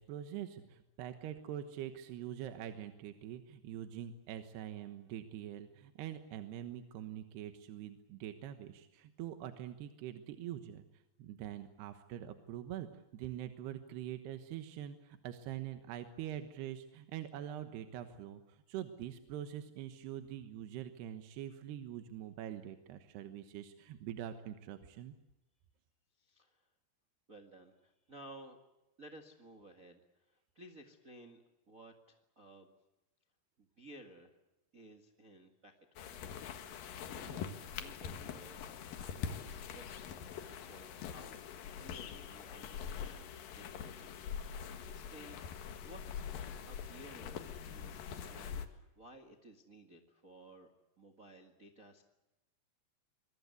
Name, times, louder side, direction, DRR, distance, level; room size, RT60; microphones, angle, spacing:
voice 1, 0.0-10.8 11.2-25.1, right 11 dB, 75° right, 8 dB, 3.2 m, -44 dB
voice 2, 26.2-26.7 27.3-28.6 29.0-31.4 31.7-32.7 33.6-34.4 34.7-36.2 36.6-44.1 44.5-45.4 45.8-46.1 46.7-50.7 51.0-52.0, right 1 dB, 55° right, 4 dB, 0.9 m, -56 dB
sound 1, 36.0-48.7, left 7 dB, 60° left, 3.0 m, -44 dB
26.5 x 22.0 x 8.1 m, 0.97 s
omnidirectional pair, 5.0 m